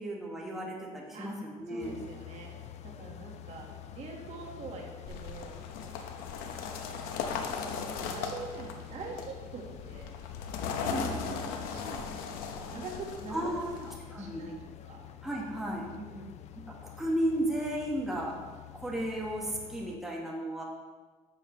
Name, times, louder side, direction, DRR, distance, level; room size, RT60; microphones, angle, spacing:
voice 1, 0.0-1.9 10.9-11.4 13.3-13.7 14.1-14.4 15.2-15.9 16.8-18.3 18.7-20.6, right 1 dB, 5° right, -3 dB, 1.5 m, -34 dB
voice 2, 1.7-3.7 3.9-6.4 6.9-7.3 7.5-10.1 10.7-15.0 15.9-16.4, right 3 dB, 50° right, 0 dB, 1.7 m, -45 dB
sound 1, 1.8-20.0, left 11 dB, 50° left, 0.4 m, -48 dB
sound 2, 5.1-14.0, left 6 dB, 85° left, 0.9 m, -38 dB
10.5 x 7.1 x 3.2 m, 1.4 s
cardioid pair, 125°, 15 cm